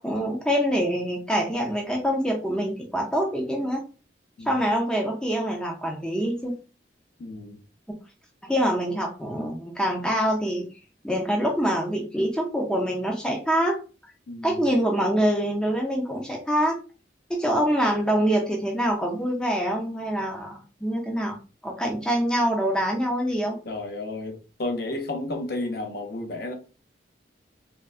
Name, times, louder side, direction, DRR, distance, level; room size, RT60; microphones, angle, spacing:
voice 1, 0.0-3.8 4.5-6.6 8.4-10.6 11.0-13.8 14.4-16.8 17.3-21.4 21.6-23.6, equal, 5° left, 0.4 m, -25 dB
voice 2, 7.2-7.6 14.3-14.6 23.7-26.6, left 2 dB, 55° left, 0.5 m, -32 dB
3.5 x 2.1 x 2.4 m
head